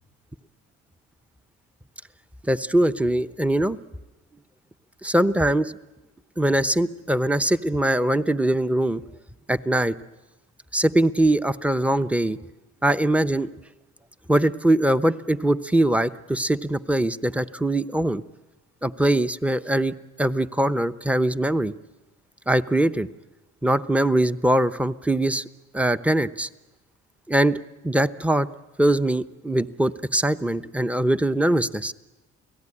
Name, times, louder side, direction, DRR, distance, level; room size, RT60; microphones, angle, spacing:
voice 1, 2.5-3.8 5.0-5.7 6.4-9.0 9.5-9.9 10.7-12.4 12.8-13.5 14.3-18.2 18.8-19.9 20.2-21.7 22.5-23.1 23.6-25.4 25.7-26.5 27.3-27.6 27.8-28.5 28.8-31.9, right 1 dB, 5° right, 12 dB, 0.8 m, -22 dB
29.0 x 18.0 x 9.9 m, 1.1 s
cardioid pair, 90°, 30 cm